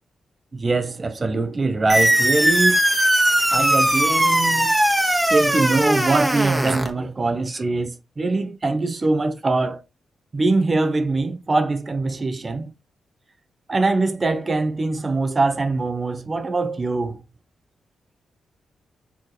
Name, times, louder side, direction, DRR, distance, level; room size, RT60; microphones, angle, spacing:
voice 1, 0.5-2.8 3.5-4.7 5.3-9.8 10.3-12.6 13.7-17.2, right 3 dB, 35° right, 0.8 m, -22 dB
sound 1, 1.9-6.9, right 1 dB, 10° right, 1.4 m, -19 dB
4.6 x 3.6 x 3.1 m
supercardioid pair, 50°, 0 cm